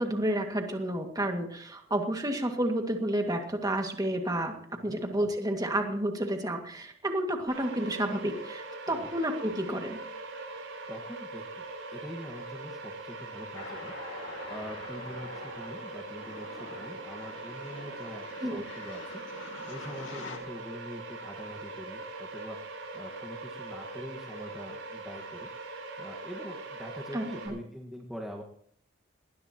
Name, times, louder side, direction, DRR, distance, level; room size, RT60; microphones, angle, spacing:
voice 1, 0.0-10.0 18.4-18.6 27.1-27.6, right 1 dB, 20° right, 3 dB, 2.0 m, -30 dB
sound 1, 7.5-27.5, right 3 dB, 90° right, 7.5 m, -42 dB
voice 2, 10.9-11.6 11.9-14.2 14.4-28.4, equal, ahead, -1 dB, 1.5 m, -44 dB
sound 2, 13.5-20.4, left 3 dB, 70° left, 2.8 m, -46 dB
20.0 x 19.0 x 3.0 m, 0.63 s
head